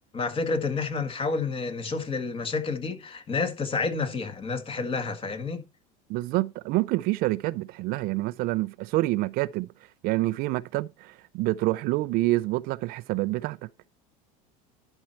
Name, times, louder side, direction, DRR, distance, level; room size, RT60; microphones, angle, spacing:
voice 1, 0.1-5.6, left 4 dB, 30° left, 1.8 m, -29 dB
voice 2, 6.1-9.7 10.0-13.7, right 19 dB, 55° right, 0.4 m, -27 dB
11.5 x 4.4 x 4.4 m
supercardioid pair, 105°, 18 cm